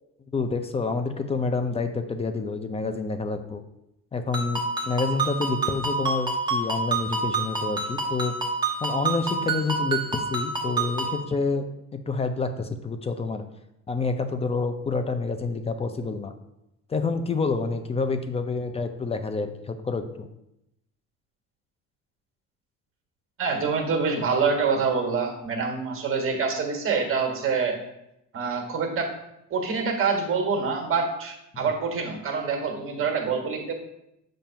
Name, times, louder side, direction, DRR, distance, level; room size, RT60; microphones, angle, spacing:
voice 1, 0.3-3.6 4.1-8.3 8.8-11.7 11.9-13.4 13.9-16.3 16.9-20.3 31.5-31.7, left 4 dB, 20° left, 8 dB, 0.5 m, -28 dB
Ringtone, 4.3-11.2, right 3 dB, 15° right, 1.0 m, -28 dB
voice 2, 23.4-27.8 28.3-29.1 29.5-33.7, right 5 dB, 40° right, 3 dB, 1.4 m, -26 dB
7.3 x 2.6 x 5.7 m, 0.85 s
cardioid pair, 115°, 32 cm